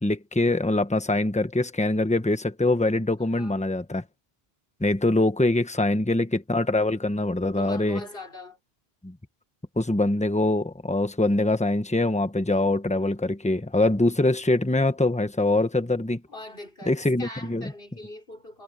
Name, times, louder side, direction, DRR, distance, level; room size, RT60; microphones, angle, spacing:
voice 1, 0.0-4.0 4.8-8.0 9.0-9.2 9.8-16.2 16.9-17.7, left 2 dB, 5° left, 1.1 m, -23 dB
voice 2, 3.2-3.6 5.9-6.0 7.6-8.6 16.3-18.6, left 1 dB, 65° left, 5.7 m, -42 dB
omnidirectional pair, 1.0 m